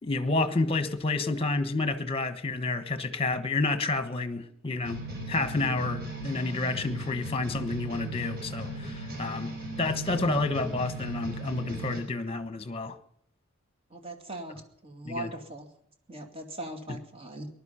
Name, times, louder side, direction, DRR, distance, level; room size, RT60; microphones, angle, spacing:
voice 1, 0.0-5.0 5.3-13.0 15.0-15.3 16.9-17.0, left 2 dB, 30° left, 11 dB, 1.3 m, -29 dB
sound 1, 4.8-12.0, right 1 dB, 45° right, 5.4 m, -37 dB
voice 2, 13.9-15.7 16.1-17.5, right 1 dB, 30° right, 5 dB, 2.4 m, -40 dB
19.0 x 12.0 x 5.7 m, 0.68 s
head